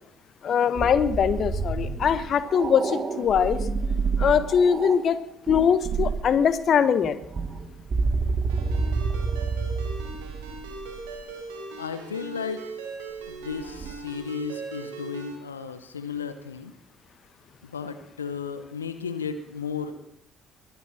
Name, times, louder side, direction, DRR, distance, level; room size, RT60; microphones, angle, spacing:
voice 1, 0.4-3.6 4.2-5.2 5.5-7.2, left 7 dB, 50° left, 13 dB, 1.1 m, -22 dB
sound 1, 0.8-5.0 5.5-6.3 7.0-11.2 13.4-13.9, right 4 dB, 40° right, 1.9 m, -28 dB
Ringtone, 8.5-15.4, right 3 dB, 75° right, 2.7 m, -39 dB
voice 2, 11.8-12.6 13.3-16.7 17.6-19.9, left 6 dB, 85° left, 9 dB, 0.9 m, -34 dB
22.0 x 10.5 x 5.8 m, 0.75 s
figure-of-eight pair, 50°, 0 cm